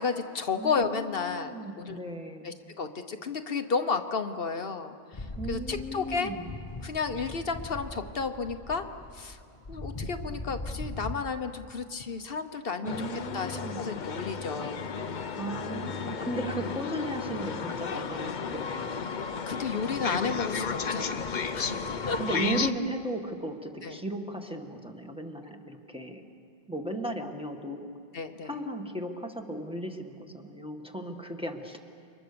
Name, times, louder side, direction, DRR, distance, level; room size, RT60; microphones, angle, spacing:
voice 1, 0.0-2.0 2.4-6.3 6.8-8.9 9.1-9.4 9.7-13.0 13.3-14.9 19.5-22.2 23.8-24.0 28.1-28.5, left 5 dB, 65° left, 7 dB, 1.2 m, -32 dB
voice 2, 0.6-2.5 5.4-6.5 12.8-13.8 15.4-19.0 22.2-26.2 26.7-27.9 28.4-31.8, right 1 dB, 5° right, 2 dB, 1.8 m, -36 dB
sound 1, 5.1-11.2, left 2 dB, 30° left, 1.3 m, -40 dB
sound 2, 12.8-22.7, left 5 dB, 50° left, 0.9 m, -33 dB
30.0 x 24.5 x 6.9 m, 2.4 s
omnidirectional pair, 1.0 m